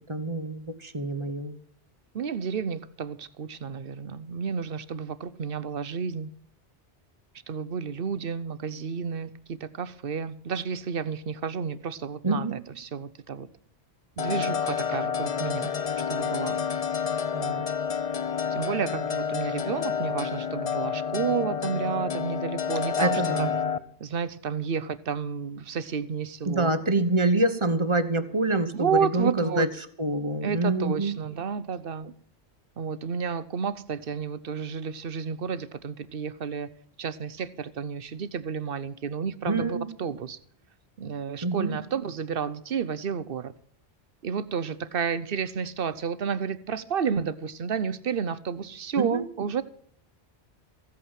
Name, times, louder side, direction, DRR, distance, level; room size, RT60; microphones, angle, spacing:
voice 1, 0.1-1.6 12.2-12.6 23.0-23.5 26.4-29.7 30.0-31.1 39.4-39.9 41.4-41.8 49.0-49.3, right 2 dB, 25° right, 1.2 m, -26 dB
voice 2, 2.1-6.3 7.5-13.5 14.2-15.7 16.1-16.6 17.3-17.6 18.5-23.1 23.4-23.5 24.0-26.7 28.8-29.7 30.4-32.1 32.8-36.7 37.0-40.4 41.0-43.5 44.2-49.6, right 6 dB, 60° right, 1.0 m, -31 dB
sound 1, 14.2-23.8, left 7 dB, 40° left, 0.6 m, -29 dB
15.5 x 8.6 x 7.3 m
omnidirectional pair, 1.1 m